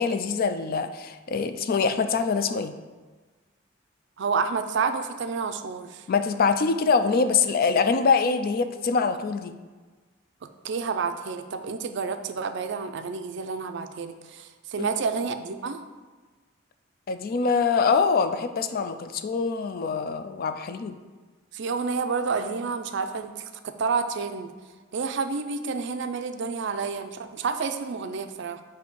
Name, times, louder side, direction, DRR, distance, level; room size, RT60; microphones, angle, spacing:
voice 1, 0.0-2.7 6.1-9.5 14.8-14.9 17.1-21.0, left 5 dB, 50° left, 9 dB, 0.4 m, -24 dB
voice 2, 4.2-6.0 10.6-15.8 21.5-24.5 24.9-28.6, right 5 dB, 65° right, 8 dB, 0.4 m, -29 dB
7.6 x 2.8 x 5.2 m, 1.3 s
head